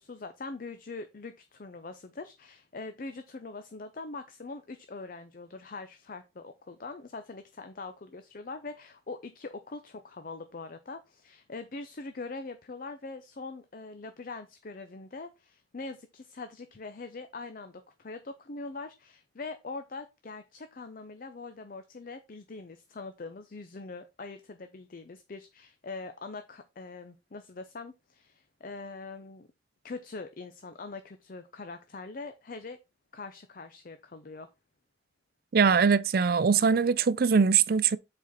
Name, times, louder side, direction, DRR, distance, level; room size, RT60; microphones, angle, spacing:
voice 1, 0.0-29.5 29.8-32.8 33.1-34.5, left 3 dB, 50° left, 0.6 m, -42 dB
voice 2, 35.5-38.0, right 6 dB, 55° right, 0.4 m, -22 dB
7.3 x 4.3 x 4.0 m
head